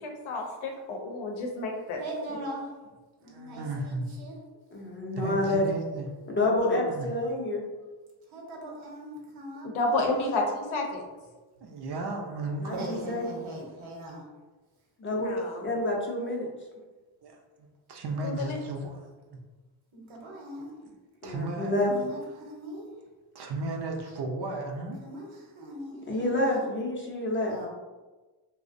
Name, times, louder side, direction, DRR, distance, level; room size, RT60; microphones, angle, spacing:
voice 1, 0.0-2.0 2.3-2.4 6.6-6.8 9.6-11.0 15.2-15.6 18.2-18.6, left 2 dB, 85° left, 1 dB, 0.6 m, -31 dB
voice 2, 2.0-2.6 3.2-4.3 8.3-10.3 12.7-14.2 19.9-20.7 21.8-22.9 25.0-25.3 25.6-26.6 27.5-27.7, right 1 dB, 75° right, -2 dB, 0.9 m, -40 dB
voice 3, 3.2-4.1 5.1-6.1 6.9-7.1 11.6-13.1 17.2-19.4 21.2-21.9 23.3-25.0, right 2 dB, 55° right, 2 dB, 0.5 m, -35 dB
voice 4, 4.7-5.6 6.3-7.6 12.6-13.2 15.0-15.3 15.6-16.5 21.2-21.9 26.1-27.6, left 1 dB, 25° left, -2 dB, 0.5 m, -28 dB
2.5 x 2.1 x 2.5 m, 1.2 s
cardioid pair, 80°, 48 cm